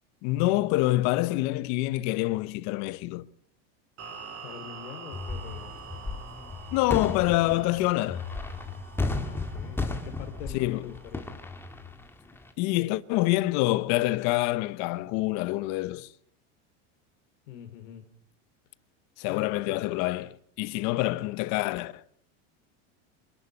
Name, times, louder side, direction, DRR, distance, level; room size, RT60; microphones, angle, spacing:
voice 1, 0.2-3.3 6.7-8.3 10.5-10.8 12.6-16.1 19.2-22.0, left 18 dB, 50° left, 0.9 m, -26 dB
sound 1, 4.0-11.2, right 6 dB, 40° right, 5.8 m, -46 dB
voice 2, 4.4-5.8 9.2-11.3 17.5-18.0 19.2-19.8, left 10 dB, 80° left, 3.1 m, -43 dB
sound 2, 5.1-12.5, left 3 dB, 5° left, 1.8 m, -35 dB
25.5 x 11.5 x 9.8 m
supercardioid pair, 155°, 37 cm